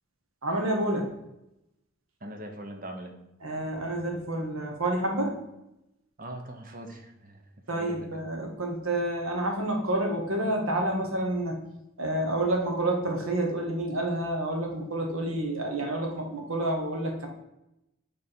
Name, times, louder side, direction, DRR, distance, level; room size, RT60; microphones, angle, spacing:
voice 1, 0.4-1.1 3.4-5.4 7.7-11.6 12.0-17.3, right 1 dB, 90° right, 2 dB, 1.3 m, -29 dB
voice 2, 2.2-3.1 6.2-7.4 7.7-8.2, right 1 dB, 45° right, 4 dB, 0.8 m, -41 dB
6.6 x 3.6 x 4.4 m, 0.87 s
head